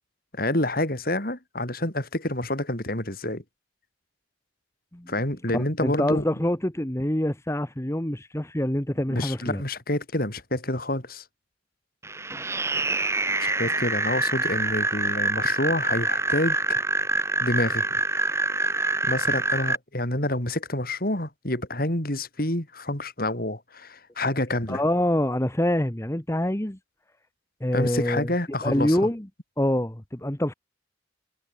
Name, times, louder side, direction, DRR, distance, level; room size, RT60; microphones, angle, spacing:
voice 1, 0.3-3.4 5.1-6.2 9.1-11.2 13.4-16.8 17.4-17.8 19.0-24.8 27.7-29.0, left 1 dB, 50° left, 4.4 m, -28 dB
voice 2, 5.5-9.6 24.7-26.8 27.6-28.3 28.6-29.3 29.6-30.5, left 1 dB, 15° left, 1.2 m, -25 dB
sound 1, 12.0-19.8, right 2 dB, 15° right, 2.8 m, -26 dB
head